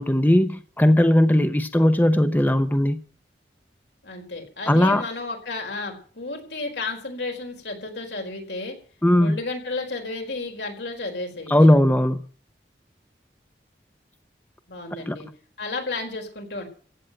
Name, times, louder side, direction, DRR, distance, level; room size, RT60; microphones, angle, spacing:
voice 1, 0.0-3.0 4.7-5.0 9.0-9.4 11.5-12.2 15.1-15.2, left 1 dB, 10° left, 0.7 m, -18 dB
voice 2, 4.0-8.8 9.2-11.5 14.7-15.3 15.6-16.6, left 3 dB, 85° left, 4.6 m, -32 dB
16.0 x 7.9 x 9.0 m
head